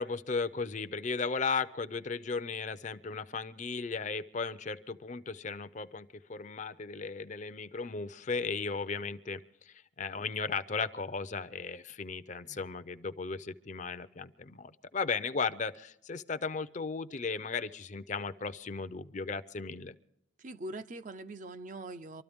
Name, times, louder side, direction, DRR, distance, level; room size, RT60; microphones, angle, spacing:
voice 1, 0.0-19.9, left 4 dB, 40° left, 0.6 m, -36 dB
voice 2, 20.4-22.2, right 2 dB, 40° right, 0.5 m, -43 dB
25.0 x 13.0 x 3.5 m
head